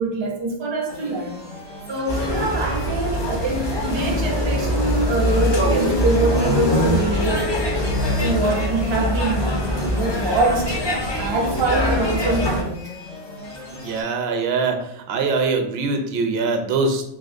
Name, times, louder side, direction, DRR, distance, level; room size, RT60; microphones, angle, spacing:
voice 1, 0.0-1.4 1.9-7.5 8.0-10.8 11.2-12.8, right 2 dB, 40° right, 0.4 m, -24 dB
sound 1, 0.9-14.0, left 2 dB, 90° left, 1.2 m, -38 dB
sound 2, 2.1-12.6, equal, 40° left, 0.4 m, -23 dB
voice 2, 13.7-17.0, right 4 dB, 70° right, 0.8 m, -23 dB
3.0 x 2.8 x 2.5 m
omnidirectional pair, 1.2 m